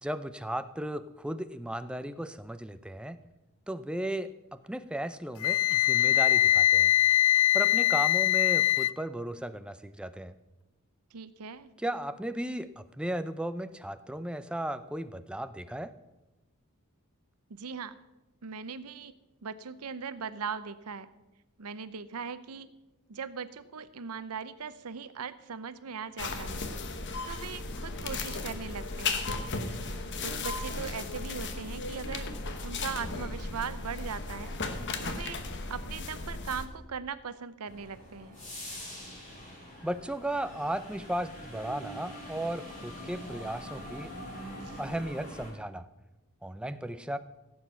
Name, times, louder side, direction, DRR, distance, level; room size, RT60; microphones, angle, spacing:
voice 1, 0.0-3.2 3.7-6.9 7.5-10.3 11.8-15.9 39.8-44.1 44.8-45.9 46.4-47.2, right 1 dB, 5° right, 11 dB, 0.4 m, -35 dB
Wind instrument woodwind instrument, 5.4-8.9, left 13 dB, 75° left, 0.4 m, -23 dB
voice 2, 11.1-11.7 17.5-18.0 18.4-19.1 19.4-21.1 21.6-22.7 23.1-26.6 27.3-29.2 30.2-32.3 32.6-34.5 35.0-35.4 35.7-38.4 44.6-44.8, right 6 dB, 80° right, 14 dB, 0.7 m, -39 dB
sound 1, 26.2-36.7, left 3 dB, 55° left, 1.1 m, -35 dB
sound 2, 37.7-45.5, equal, 35° left, 5.5 m, -44 dB
16.0 x 7.9 x 5.7 m, 1.0 s
head